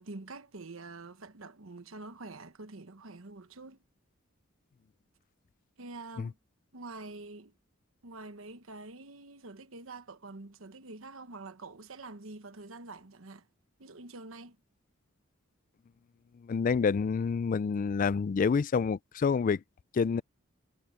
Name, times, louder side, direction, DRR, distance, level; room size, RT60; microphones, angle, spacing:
voice 1, 0.0-3.8 5.8-6.4 6.7-7.5 8.0-13.5 13.8-14.6, right 3 dB, 75° right, 1.2 m, -46 dB
voice 2, 16.4-19.6 19.9-20.2, left 5 dB, 40° left, 0.3 m, -28 dB
head